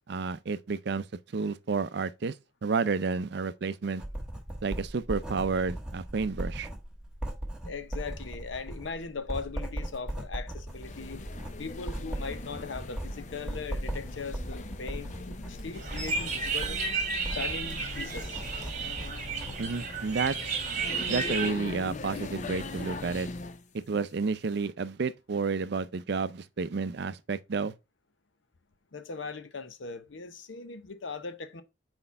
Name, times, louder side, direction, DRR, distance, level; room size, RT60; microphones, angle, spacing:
voice 1, 0.1-1.0 1.3-2.3 2.6-4.0 4.6-6.7 19.6-20.4 21.1-23.3 23.9-27.7, right 4 dB, 60° right, 0.5 m, -30 dB
Writing, 4.0-19.6, right 1 dB, 5° right, 1.3 m, -38 dB
voice 2, 7.6-11.2 11.6-16.8 17.3-18.4 28.9-31.6, left 4 dB, 75° left, 0.8 m, -39 dB
sound 1, 10.7-23.6, left 3 dB, 40° left, 0.5 m, -41 dB
sound 2, 15.7-21.5, right 5 dB, 40° right, 1.3 m, -33 dB
4.4 x 4.2 x 5.4 m
head